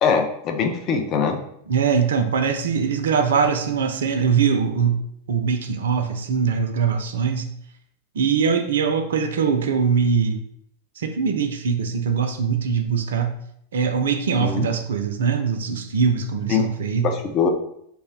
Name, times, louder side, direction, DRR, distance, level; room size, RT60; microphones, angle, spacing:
voice 1, 0.0-1.4 14.4-14.7 16.5-16.6 17.0-17.5, left 6 dB, 35° left, 5 dB, 0.4 m, -22 dB
voice 2, 1.7-5.0 5.3-7.5 8.1-10.4 11.0-13.4 13.7-17.1, right 6 dB, 60° right, 6 dB, 0.3 m, -22 dB
2.2 x 2.1 x 3.4 m, 0.72 s
figure-of-eight pair, 90°, 0 cm